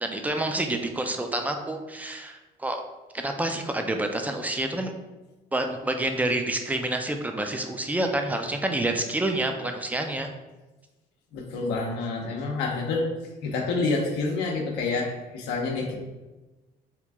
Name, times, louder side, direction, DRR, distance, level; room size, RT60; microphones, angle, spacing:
voice 1, 0.0-2.8 3.1-4.9 5.5-10.3, right 1 dB, 10° right, 4 dB, 0.3 m, -28 dB
voice 2, 11.3-13.1 13.4-16.0, left 3 dB, 85° left, -2 dB, 0.6 m, -28 dB
2.9 x 2.4 x 3.5 m, 1.1 s
cardioid pair, 110°, 17 cm